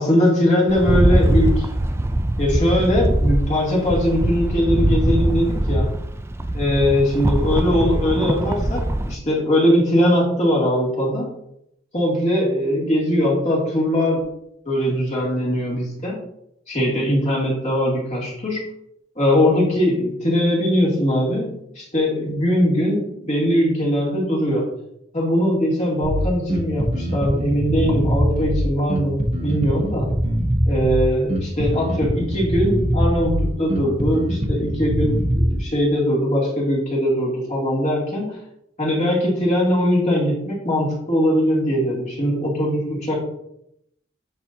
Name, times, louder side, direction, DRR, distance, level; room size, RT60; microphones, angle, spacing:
voice 1, 0.0-1.5 2.4-5.9 6.5-11.3 11.9-14.2 14.7-16.2 16.7-18.6 19.2-24.6 25.1-30.1 30.6-38.4 38.8-43.2, equal, 40° left, -5 dB, 2.5 m, -20 dB
Rattle, 0.7-9.1, right 1 dB, 15° right, 0.3 m, -21 dB
Bass guitar, 26.0-35.6, equal, 35° right, 0.9 m, -22 dB
10.5 x 4.3 x 2.7 m, 0.78 s
head